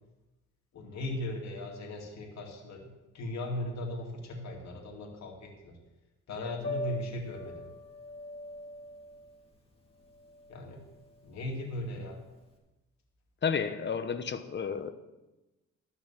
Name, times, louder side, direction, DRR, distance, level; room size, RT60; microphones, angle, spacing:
voice 1, 0.7-2.9 3.1-5.7 6.3-7.7 10.5-10.8 11.2-12.2, left 1 dB, 65° left, -1 dB, 2.6 m, -38 dB
Piano, 6.6-12.5, left 1 dB, 20° left, 2.4 m, -42 dB
voice 2, 13.4-14.9, left 6 dB, 35° left, 10 dB, 1.0 m, -31 dB
13.0 x 6.2 x 7.3 m, 1.1 s
cardioid pair, 90°, 30 cm